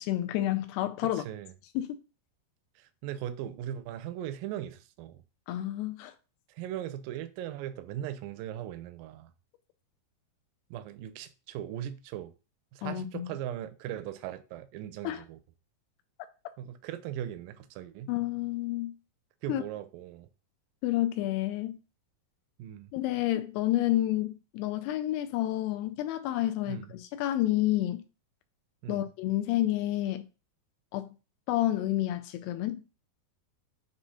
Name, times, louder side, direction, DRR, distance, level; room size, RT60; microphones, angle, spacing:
voice 1, 0.0-1.2 1.8-1.9 5.5-6.1 12.8-13.3 15.0-15.2 18.1-18.9 19.5-19.6 20.8-21.8 22.9-28.0 28.9-30.2 30.9-31.1 31.5-32.8, left 14 dB, 85° left, 2.7 m, -29 dB
voice 2, 1.1-1.5 2.8-5.2 6.5-9.3 10.7-12.3 12.7-15.4 16.6-18.1 19.4-20.3 22.6-22.9 26.7-26.9 28.8-29.1, right 11 dB, 85° right, 2.0 m, -39 dB
6.9 x 3.0 x 5.5 m
omnidirectional pair, 4.7 m